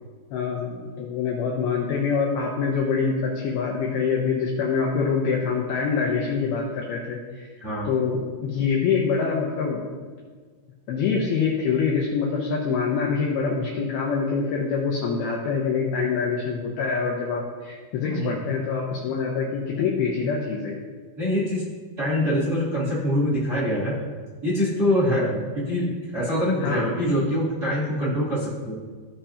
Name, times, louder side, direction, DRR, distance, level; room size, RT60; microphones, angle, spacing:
voice 1, 0.3-7.5 7.9-9.8 10.9-20.8 26.6-26.9, left 5 dB, 80° left, -2 dB, 2.3 m, -25 dB
voice 2, 7.6-7.9 18.0-18.4 21.2-21.6 22.0-24.0 24.4-28.7, equal, 25° right, -9 dB, 2.3 m, -24 dB
16.5 x 5.6 x 2.8 m, 1.5 s
omnidirectional pair, 5.5 m